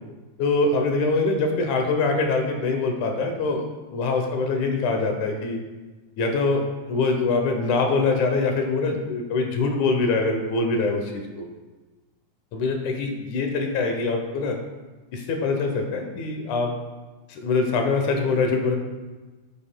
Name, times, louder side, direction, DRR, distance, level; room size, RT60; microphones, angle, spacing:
voice 1, 0.4-3.7 3.9-5.6 6.2-11.5 12.5-14.6 15.1-16.7 17.3-18.8, left 3 dB, 75° left, 3 dB, 2.2 m, -24 dB
10.0 x 7.6 x 2.2 m, 1.2 s
omnidirectional pair, 3.6 m